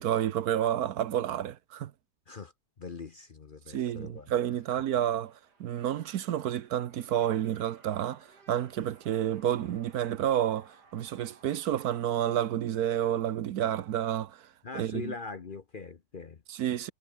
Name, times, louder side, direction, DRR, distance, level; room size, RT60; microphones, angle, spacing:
voice 1, 0.0-1.9 3.7-5.3 5.6-14.4 14.7-15.1 16.5-16.9, right 11 dB, 70° right, 1.3 m, -30 dB
voice 2, 2.8-4.3 14.6-16.4, left 4 dB, 40° left, 0.9 m, -42 dB
sound 1, 4.2-13.0, right 3 dB, 85° right, 4.5 m, -61 dB
omnidirectional pair, 1.7 m